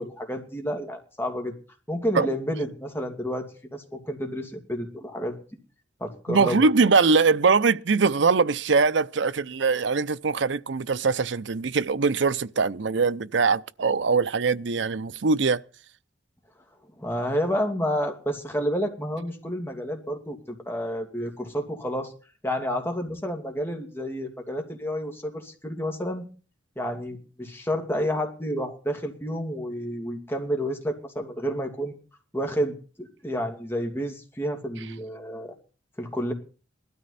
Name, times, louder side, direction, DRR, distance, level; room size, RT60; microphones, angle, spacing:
voice 1, 0.0-1.5 1.9-5.4 6.0-6.7 17.0-20.4 20.7-22.1 22.4-26.2 26.8-31.9 32.3-32.7 33.0-35.6 36.0-36.3, equal, 10° left, 2.7 m, -30 dB
voice 2, 6.3-15.6, right 4 dB, 65° right, 0.6 m, -22 dB
18.5 x 13.0 x 4.2 m
head